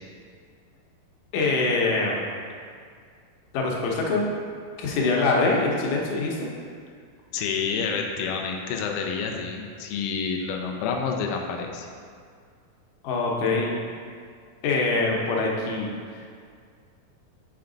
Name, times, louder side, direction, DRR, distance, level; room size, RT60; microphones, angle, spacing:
voice 1, 1.3-2.3 3.5-4.2 4.8-6.5 13.0-13.7 14.6-16.2, left 3 dB, 75° left, -2 dB, 2.2 m, -24 dB
voice 2, 7.3-11.9, left 5 dB, 90° left, 1 dB, 1.8 m, -28 dB
7.0 x 4.4 x 3.8 m, 2.1 s
omnidirectional pair, 4.2 m